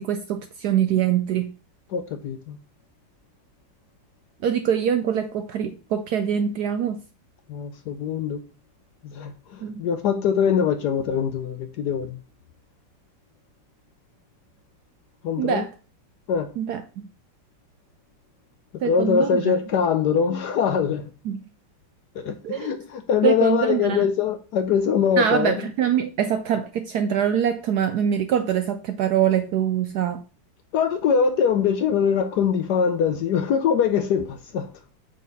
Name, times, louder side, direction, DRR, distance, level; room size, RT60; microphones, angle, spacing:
voice 1, 0.0-1.5 4.4-7.0 9.6-9.8 15.4-15.7 16.6-17.1 18.8-19.5 21.3-21.4 22.4-22.7 23.2-24.1 25.2-30.3, right 9 dB, 75° right, 0.9 m, -24 dB
voice 2, 1.9-2.6 7.5-8.4 9.0-12.2 15.2-15.7 16.3-16.5 18.8-21.1 22.1-25.7 30.7-34.7, left 7 dB, 70° left, 1.1 m, -23 dB
8.3 x 4.0 x 4.1 m
omnidirectional pair, 2.2 m